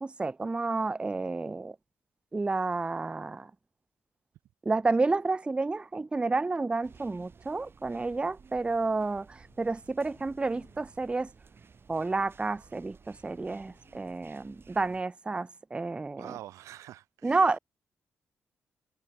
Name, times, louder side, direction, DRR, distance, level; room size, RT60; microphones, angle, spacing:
voice 1, 0.0-1.8 2.3-3.5 4.7-11.3 11.9-16.4 17.2-17.6, right 3 dB, 20° right, 0.4 m, -30 dB
sound 1, 5.7-15.6, left 10 dB, 75° left, 5.0 m, -68 dB
sound 2, 6.8-15.0, right 5 dB, 50° right, 5.2 m, -56 dB
voice 2, 16.2-17.4, right 13 dB, 80° right, 0.7 m, -45 dB
supercardioid pair, 50°, 5 cm